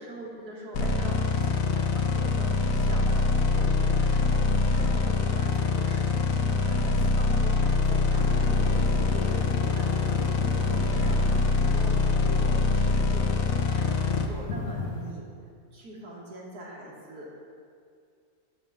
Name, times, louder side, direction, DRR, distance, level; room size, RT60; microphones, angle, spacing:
voice 1, 0.0-15.3 15.7-17.4, right 1 dB, 85° right, -4 dB, 2.2 m, -42 dB
sound 1, 0.7-14.3, left 4 dB, 70° left, 1.0 m, -24 dB
sound 2, 8.1-15.1, left 3 dB, 85° left, 1.5 m, -39 dB
9.4 x 3.7 x 7.0 m, 2.3 s
omnidirectional pair, 1.6 m